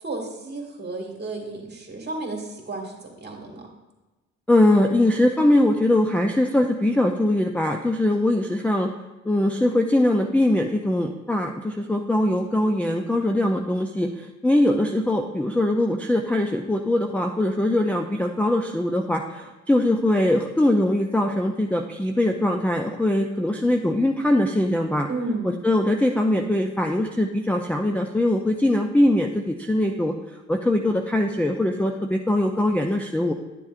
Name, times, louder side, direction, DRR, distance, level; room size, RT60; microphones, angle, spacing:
voice 1, 0.0-3.6 25.1-25.5, right 2 dB, 35° right, 1 dB, 1.9 m, -32 dB
voice 2, 4.5-8.9 9.3-25.1 25.4-30.1 30.5-33.3, left 1 dB, 5° left, 1 dB, 0.4 m, -22 dB
10.5 x 7.1 x 2.5 m, 1.1 s
cardioid pair, 90°, 30 cm